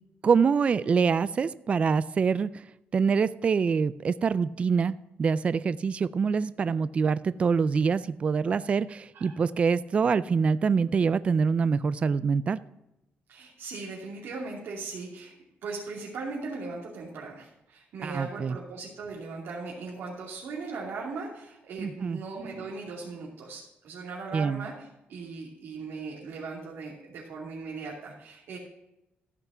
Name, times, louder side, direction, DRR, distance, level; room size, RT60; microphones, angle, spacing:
voice 1, 0.2-2.6 2.9-4.9 5.2-12.6 18.0-18.6 21.8-22.2 24.3-24.7, right 5 dB, 30° right, 16 dB, 0.3 m, -25 dB
voice 2, 13.3-15.3 15.6-28.6, right 4 dB, 75° right, -4 dB, 2.9 m, -38 dB
14.5 x 5.9 x 5.6 m, 0.88 s
wide cardioid pair, 160°, 4 cm